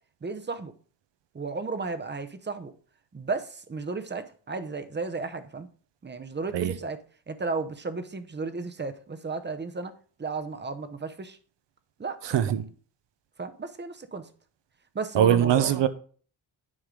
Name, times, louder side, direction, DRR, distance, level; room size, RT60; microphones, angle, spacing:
voice 1, 0.2-0.7 1.3-2.7 3.1-5.7 6.0-7.0 7.3-9.9 10.2-11.4 12.0-12.6 13.4-14.3 14.9-15.7, right 4 dB, 25° right, 0.8 m, -34 dB
voice 2, 12.2-12.6 15.1-15.9, right 10 dB, 70° right, 0.9 m, -22 dB
9.8 x 4.8 x 3.8 m
cardioid pair, 100°, 45 cm